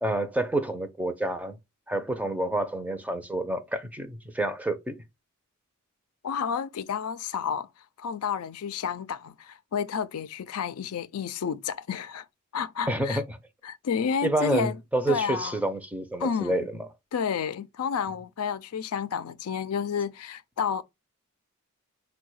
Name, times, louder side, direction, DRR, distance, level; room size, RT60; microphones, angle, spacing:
voice 1, 0.0-1.6 1.9-5.0 12.9-13.4 14.2-16.9, right 1 dB, 5° right, 0.5 m, -28 dB
voice 2, 6.2-7.7 8.0-12.3 12.5-13.2 13.6-14.8 15.1-15.6 16.2-16.6 17.1-20.8, left 7 dB, 85° left, 0.4 m, -30 dB
4.5 x 2.2 x 4.6 m
head